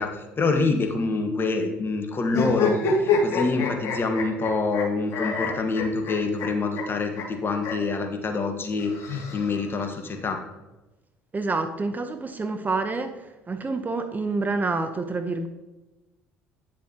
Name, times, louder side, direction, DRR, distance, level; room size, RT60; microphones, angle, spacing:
voice 1, 0.0-10.4, left 3 dB, 35° left, 4 dB, 1.5 m, -26 dB
sound 1, 2.3-4.8 5.1-6.5 6.7-6.8 7.2-7.3 7.6-7.7 8.8-9.8, left 5 dB, 50° left, 2.4 m, -26 dB
voice 2, 11.3-15.5, right 3 dB, 25° right, 8 dB, 0.9 m, -28 dB
9.6 x 7.2 x 2.9 m, 1.1 s
hypercardioid pair, 60°, 7 cm